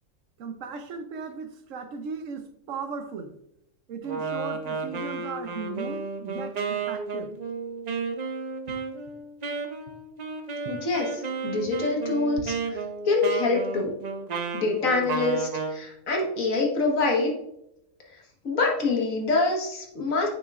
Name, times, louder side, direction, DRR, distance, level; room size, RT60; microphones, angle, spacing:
voice 1, 0.4-3.3 3.9-7.3 10.6-10.7, right 5 dB, 75° right, 8 dB, 1.1 m, -37 dB
Wind instrument woodwind instrument, 4.0-15.8, right 4 dB, 45° right, 0.6 m, -32 dB
voice 2, 10.7-12.8 13.0-13.9 14.5-17.3 18.1-20.3, left 3 dB, 90° left, 0 dB, 1.9 m, -26 dB
8.4 x 6.3 x 2.4 m, 0.81 s
omnidirectional pair, 1.4 m